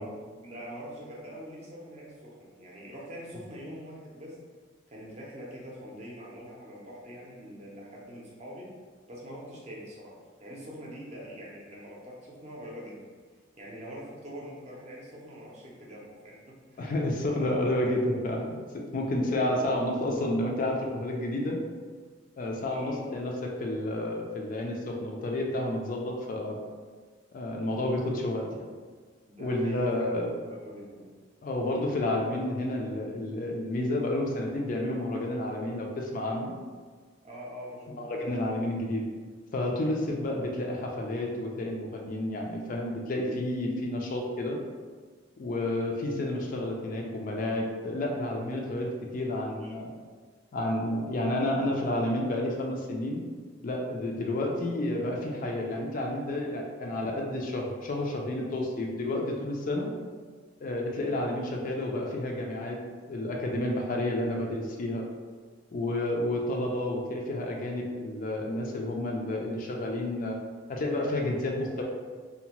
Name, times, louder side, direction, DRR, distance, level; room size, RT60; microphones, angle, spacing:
voice 1, 0.0-4.4 4.9-8.7 9.1-10.1 10.4-13.1 13.6-16.9 17.3-18.0 18.5-18.6 19.2-19.7 22.7-23.0 29.3-31.1 37.2-38.0 49.6-49.8 61.0-61.2, equal, 35° right, -4 dB, 0.6 m, -44 dB
voice 2, 16.8-21.6 22.4-26.6 27.3-28.6 29.4-30.3 31.4-36.5 38.0-39.1 39.5-44.6 45.4-49.9 50.5-53.2 53.6-59.9 60.6-62.8 63.1-65.0 65.7-70.4 70.7-71.8, left 1 dB, 40° left, 0 dB, 0.3 m, -30 dB
2.7 x 2.1 x 2.9 m, 1.5 s
head